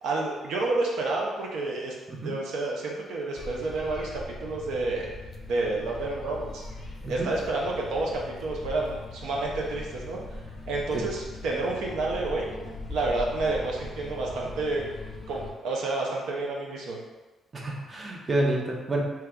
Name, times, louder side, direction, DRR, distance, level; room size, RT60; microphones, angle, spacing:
voice 1, 0.0-1.9 2.2-4.1 4.4-5.1 5.5-6.6 7.1-10.2 10.7-14.9 15.3-17.0, right 2 dB, 85° right, -2 dB, 0.5 m, -29 dB
sound 1, 3.4-15.5, left 2 dB, 35° left, 0.5 m, -40 dB
voice 2, 17.5-19.0, right 1 dB, 30° right, -1 dB, 0.6 m, -29 dB
2.9 x 2.3 x 3.4 m, 1.2 s
cardioid pair, 90°, 0 cm